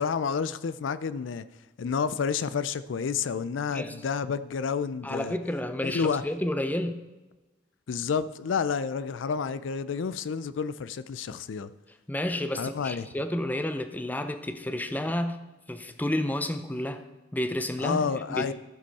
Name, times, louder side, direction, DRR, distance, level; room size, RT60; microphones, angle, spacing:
voice 1, 0.0-1.4 1.8-5.4 5.8-6.2 7.9-11.7 12.6-13.1 17.8-18.5, left 6 dB, 90° left, 0.4 m, -30 dB
voice 2, 3.7-4.0 5.0-7.0 12.1-15.4 15.7-17.0 17.3-18.5, left 1 dB, 10° left, 0.6 m, -30 dB
14.5 x 5.4 x 4.1 m
head